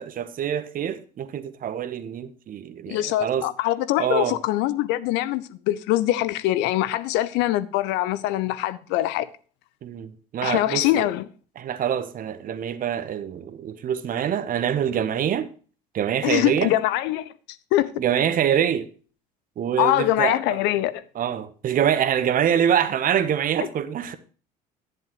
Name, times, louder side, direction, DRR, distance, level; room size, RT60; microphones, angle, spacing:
voice 1, 0.0-3.5 4.0-4.4 9.8-11.0 11.6-15.5 15.9-16.7 18.0-18.9 19.6-20.6 21.2-24.2, right 9 dB, 40° right, 1.0 m, -25 dB
voice 2, 2.9-9.3 10.4-11.3 16.2-17.3 17.7-18.0 19.8-21.0, left 15 dB, 55° left, 0.6 m, -23 dB
11.0 x 10.5 x 3.0 m
figure-of-eight pair, 60°, 21 cm